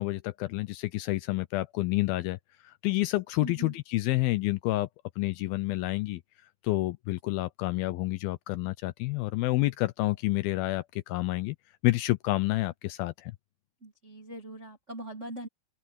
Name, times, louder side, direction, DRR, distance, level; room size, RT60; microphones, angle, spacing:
voice 1, 0.0-2.4 2.6-4.9 5.2-6.2 6.6-11.6 11.8-13.3, left 19 dB, 80° left, 2.3 m, -29 dB
voice 2, 3.4-3.7 13.8-15.5, right 1 dB, 45° right, 0.9 m, -41 dB
open air
omnidirectional pair, 4.7 m